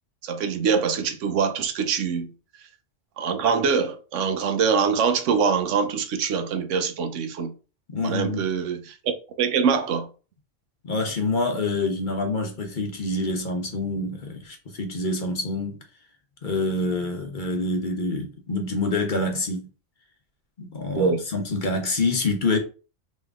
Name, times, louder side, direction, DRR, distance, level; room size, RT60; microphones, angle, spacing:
voice 1, 0.2-2.3 3.2-7.5 8.0-10.1 20.9-21.2, right 6 dB, 80° right, 1.0 m, -24 dB
voice 2, 7.9-8.5 10.8-15.8 16.4-19.7 20.6-22.6, left 2 dB, 45° left, 0.9 m, -26 dB
3.5 x 3.1 x 3.5 m
omnidirectional pair, 1.2 m